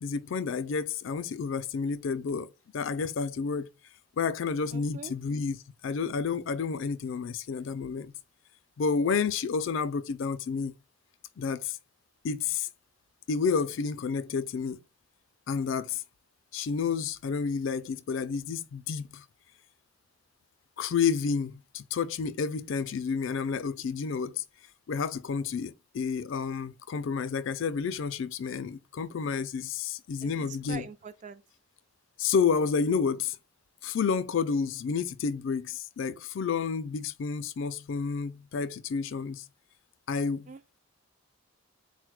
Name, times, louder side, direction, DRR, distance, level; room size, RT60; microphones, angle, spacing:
voice 1, 0.0-2.5 2.7-3.7 4.2-5.6 5.8-8.1 8.8-10.7 11.4-11.8 12.2-12.7 13.3-14.8 15.5-16.0 16.5-19.2 20.8-24.4 24.9-30.9 32.2-33.4 33.8-39.4 40.1-40.5, left 5 dB, 60° left, 0.3 m, -30 dB
voice 2, 4.7-5.1 30.2-31.4 40.5-40.8, right 4 dB, 35° right, 0.3 m, -44 dB
4.1 x 2.2 x 4.6 m
head